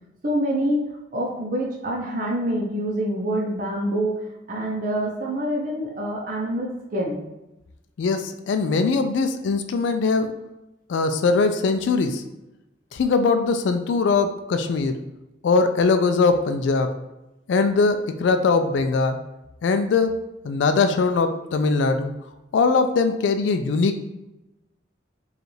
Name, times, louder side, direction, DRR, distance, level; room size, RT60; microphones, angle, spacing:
voice 1, 0.2-0.9 1.1-4.2 4.5-7.2, right 1 dB, 45° right, -2 dB, 0.6 m, -26 dB
voice 2, 8.0-10.4 10.9-12.3 12.9-15.0 15.4-17.0 17.5-19.3 19.6-20.2 20.4-22.1 22.5-24.0, left 4 dB, 80° left, 8 dB, 0.3 m, -21 dB
4.9 x 2.4 x 3.1 m, 0.96 s
head